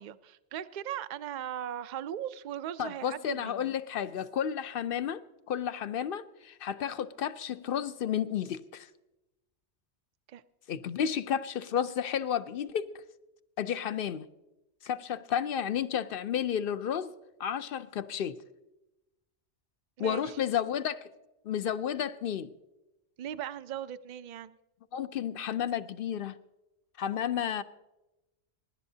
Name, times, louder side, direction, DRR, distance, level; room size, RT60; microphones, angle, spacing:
voice 1, 0.0-3.7 10.3-10.4 20.0-20.4 23.2-24.6, right 10 dB, 55° right, 0.6 m, -38 dB
voice 2, 2.8-5.2 5.5-8.9 10.7-13.0 13.6-14.3 14.8-17.1 17.4-18.4 20.0-21.1 21.4-22.5 24.9-26.4 27.0-27.6, left 9 dB, 60° left, 0.8 m, -32 dB
25.0 x 11.5 x 2.7 m
omnidirectional pair, 1.2 m